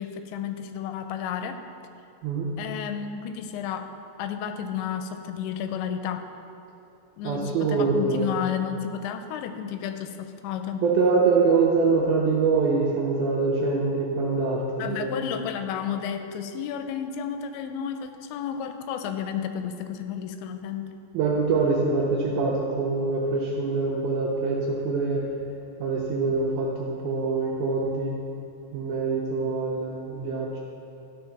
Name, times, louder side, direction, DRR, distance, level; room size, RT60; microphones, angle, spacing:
voice 1, 0.0-1.6 2.6-3.9 4.2-6.3 7.2-10.8 14.8-20.9, left 8 dB, 85° left, 8 dB, 2.9 m, -32 dB
voice 2, 2.2-2.5 7.2-8.3 10.8-15.2 21.1-25.2 25.8-28.2 28.7-30.5, right 4 dB, 80° right, -3 dB, 2.2 m, -24 dB
13.5 x 5.1 x 5.8 m, 2.6 s
omnidirectional pair, 5.2 m